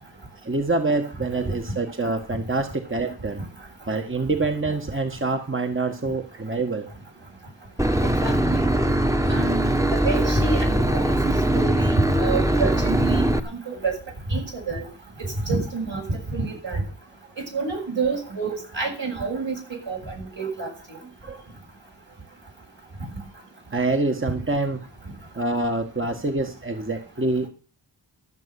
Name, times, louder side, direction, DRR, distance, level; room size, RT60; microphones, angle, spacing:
voice 1, 0.4-3.4 3.9-6.9 21.0-21.4 23.7-24.8 25.3-27.5, right 3 dB, 25° right, 5 dB, 1.5 m, -26 dB
Boat Water vehicle / Engine, 7.8-13.4, right 1 dB, 5° right, 1.3 m, -21 dB
voice 2, 8.2-8.7 9.3-13.2 13.7-14.0 14.3-14.8 15.5-16.8 17.5-20.7, right 4 dB, 65° right, 0 dB, 6.8 m, -28 dB
13.5 x 6.6 x 8.2 m, 0.37 s
cardioid pair, 45°, 48 cm